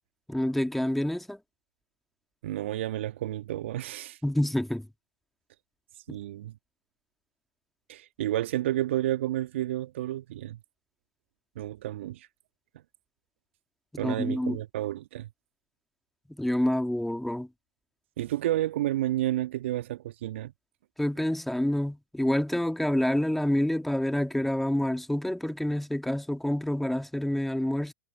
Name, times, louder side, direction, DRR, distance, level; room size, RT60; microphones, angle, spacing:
voice 1, 0.3-1.4 4.2-4.9 6.1-6.2 14.0-14.6 16.4-17.5 21.0-27.9, left 1 dB, ahead, 2.3 m, -27 dB
voice 2, 2.4-4.2 6.1-6.5 7.9-10.6 11.5-12.3 14.0-15.3 18.2-20.5, right 14 dB, 60° right, 1.5 m, -31 dB
figure-of-eight pair, 100°, 7 cm